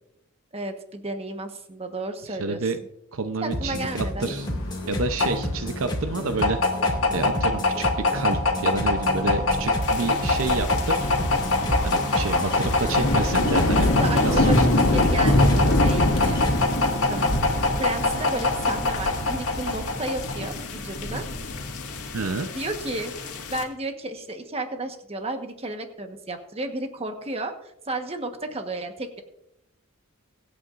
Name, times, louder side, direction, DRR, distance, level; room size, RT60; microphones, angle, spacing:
voice 1, 0.5-2.6 3.4-4.3 12.8-13.0 13.9-16.4 17.1-17.4 17.8-21.2 22.5-23.1 23.5-27.5 27.9-29.2, right 2 dB, 30° right, 6 dB, 1.3 m, -32 dB
voice 2, 2.3-2.8 3.1-4.5 4.9-6.6 6.9-7.9 8.1-11.1 11.8-15.0 22.1-22.5, right 3 dB, 70° right, 8 dB, 0.7 m, -29 dB
sound 1, 3.5-16.7, left 1 dB, 20° left, 2.2 m, -31 dB
sound 2, 4.4-20.5, left 2 dB, 65° left, 1.9 m, -24 dB
sound 3, 9.8-23.6, left 1 dB, 85° left, 2.0 m, -26 dB
24.0 x 8.6 x 2.6 m, 0.84 s
head